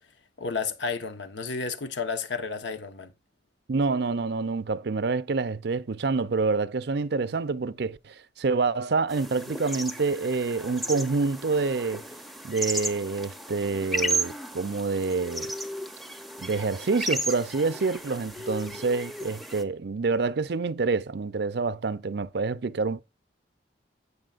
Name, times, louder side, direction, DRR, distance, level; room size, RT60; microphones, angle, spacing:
voice 1, 0.4-3.1, left 4 dB, 75° left, 1.2 m, -32 dB
voice 2, 3.7-12.1 12.4-15.5 16.4-23.0, right 4 dB, 60° right, 0.5 m, -27 dB
sound 1, 9.1-19.6, right 1 dB, ahead, 0.8 m, -34 dB
16.5 x 5.8 x 2.5 m
head